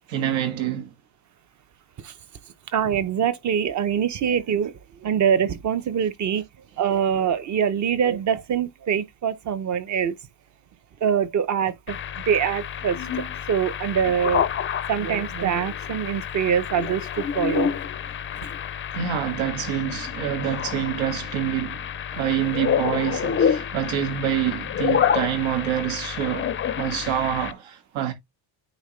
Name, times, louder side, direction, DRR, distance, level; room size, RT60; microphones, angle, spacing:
voice 1, 0.1-0.9 18.9-28.1, right 10 dB, 80° right, 2.0 m, -27 dB
voice 2, 2.7-6.4 6.8-10.2 11.0-14.4 14.9-17.7, right 8 dB, 40° right, 0.8 m, -24 dB
sound 1, 11.9-27.5, left 8 dB, 30° left, 0.4 m, -28 dB
9.2 x 3.7 x 3.2 m
cardioid pair, 155°, 46 cm